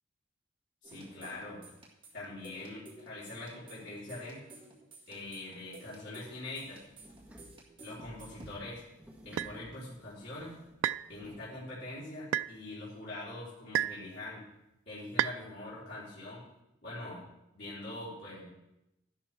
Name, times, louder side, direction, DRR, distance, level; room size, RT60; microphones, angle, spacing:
voice 1, 0.8-1.6 2.1-4.5 5.1-6.8 7.8-8.8 9.2-10.6 11.1-14.4 14.9-16.5 16.8-17.2 17.5-18.5, left 2 dB, 65° left, -9 dB, 3.8 m, -43 dB
sound 1, 0.8-8.5, right 2 dB, 25° right, 1.9 m, -53 dB
sound 2, 6.5-11.5, equal, 5° right, 1.3 m, -56 dB
sound 3, 9.4-9.6 10.8-11.1 12.3-12.5 13.7-14.1 15.2-15.4, right 10 dB, 85° right, 0.3 m, -30 dB
12.5 x 11.0 x 3.5 m, 0.88 s
head